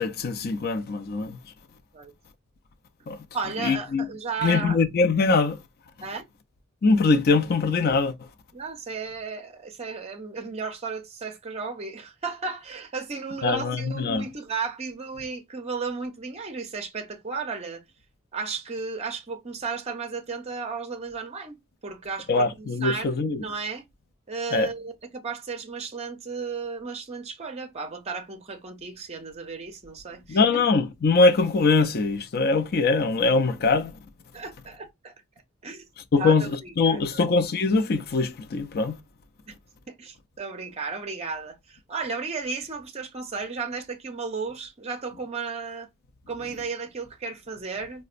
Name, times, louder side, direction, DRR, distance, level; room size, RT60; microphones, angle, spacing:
voice 1, 0.0-1.4 3.1-3.2 3.6-4.1 4.4-5.6 6.8-8.1 13.4-14.2 22.3-23.4 24.5-24.7 30.3-33.9 36.1-39.0, left 3 dB, 45° left, 0.5 m, -22 dB
voice 2, 3.3-4.8 6.0-6.2 8.5-17.8 18.3-23.9 24.3-30.6 34.3-35.1 35.6-35.8 36.2-36.3 36.6-37.4 39.5-39.6 39.9-45.9 46.3-48.0, right 4 dB, 30° right, 0.6 m, -34 dB
4.0 x 2.1 x 2.5 m
head